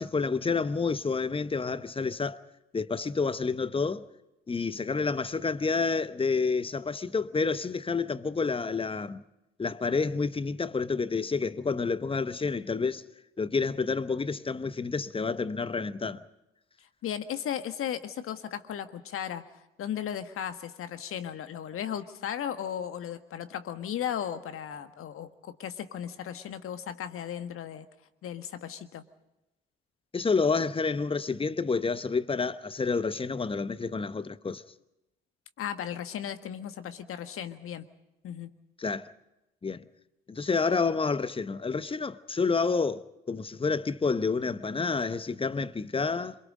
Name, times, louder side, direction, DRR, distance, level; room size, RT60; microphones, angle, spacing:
voice 1, 0.0-2.4 2.7-4.1 4.5-9.2 9.6-13.0 13.4-16.2 30.1-34.6 38.8-39.1 39.6-39.9 40.3-46.4, left 4 dB, 20° left, 0.9 m, -29 dB
voice 2, 17.0-19.4 19.8-27.9 28.2-29.0 35.6-37.9 38.2-38.5, left 9 dB, 45° left, 1.6 m, -36 dB
27.0 x 22.0 x 5.2 m
figure-of-eight pair, 50°, 29 cm